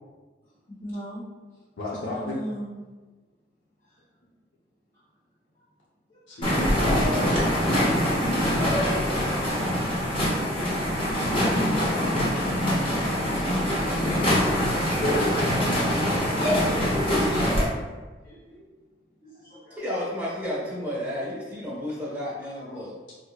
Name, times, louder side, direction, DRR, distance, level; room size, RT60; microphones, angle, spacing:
voice 1, 0.7-1.2 1.9-2.8 3.8-4.0 6.1-6.6 7.7-8.2 11.2-13.1 18.2-18.7 19.2-19.8 22.3-22.9, left 1 dB, 45° left, -13 dB, 1.2 m, -39 dB
voice 2, 1.8-2.4 6.3-7.5 15.0-15.8, left 2 dB, 85° left, -6 dB, 0.6 m, -32 dB
sound 1, 6.4-17.7, equal, 30° left, 0.8 m, -24 dB
voice 3, 19.8-23.0, left 1 dB, 10° right, -7 dB, 1.1 m, -32 dB
4.4 x 2.6 x 2.4 m, 1.3 s
head